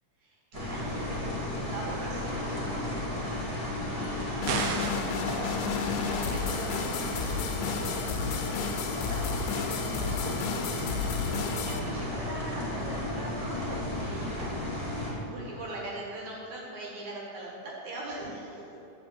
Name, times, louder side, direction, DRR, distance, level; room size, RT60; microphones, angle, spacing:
voice 1, 0.2-3.1 3.4-4.7 6.0-6.5 6.7-8.3 10.8-14.6 15.0-18.8, right 1 dB, 60° right, -3 dB, 2.6 m, -42 dB
sound 1, 0.5-15.1, left 1 dB, 20° right, 0.9 m, -33 dB
sound 2, 4.4-11.8, left 7 dB, 80° left, 2.2 m, -33 dB
sound 3, 4.5-5.2, right 5 dB, 80° right, 1.6 m, -30 dB
10.0 x 5.1 x 6.8 m, 3.0 s
omnidirectional pair, 3.9 m